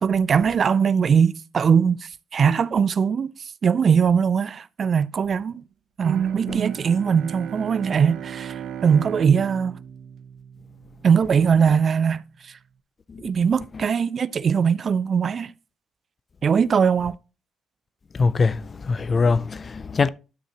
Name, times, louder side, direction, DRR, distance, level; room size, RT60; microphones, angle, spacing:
voice 1, 0.0-5.6 6.0-9.8 11.0-12.6 13.2-15.5 16.4-17.2, right 6 dB, 50° right, 0.3 m, -21 dB
Bowed string instrument, 6.0-11.1, right 9 dB, 75° right, 0.7 m, -33 dB
voice 2, 18.2-18.6 18.9-20.1, left 4 dB, 35° left, 0.4 m, -21 dB
12.0 x 5.5 x 2.9 m
cardioid pair, 90°, 0 cm